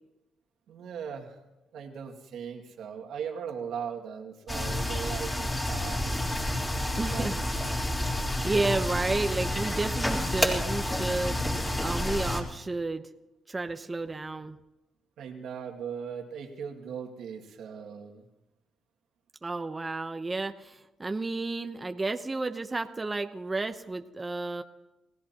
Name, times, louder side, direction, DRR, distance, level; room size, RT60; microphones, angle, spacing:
voice 1, 0.7-1.4 1.7-6.1 6.7-7.4 15.2-18.2, right 7 dB, 75° right, 2 dB, 2.2 m, -39 dB
sound 1, 4.5-12.4, left 1 dB, 15° left, 3.6 m, -29 dB
voice 2, 7.0-7.4 8.3-13.1 13.5-14.6 19.4-24.6, right 3 dB, 20° right, 6 dB, 0.8 m, -32 dB
29.5 x 16.5 x 3.0 m, 0.99 s
cardioid pair, 90°, 0 cm